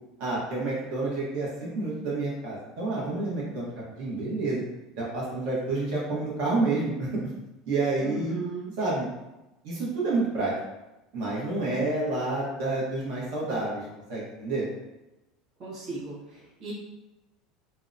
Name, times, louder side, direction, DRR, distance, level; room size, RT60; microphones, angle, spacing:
voice 1, 0.2-4.6 5.0-7.3 7.7-8.3 8.8-9.1 9.6-10.5 11.1-13.8 14.1-14.6, right 2 dB, 65° right, -5 dB, 0.9 m, -29 dB
voice 2, 8.0-8.7 15.6-16.7, right 3 dB, 30° right, -8 dB, 0.8 m, -37 dB
2.7 x 2.1 x 2.5 m, 0.99 s
cardioid pair, 165°, 0 cm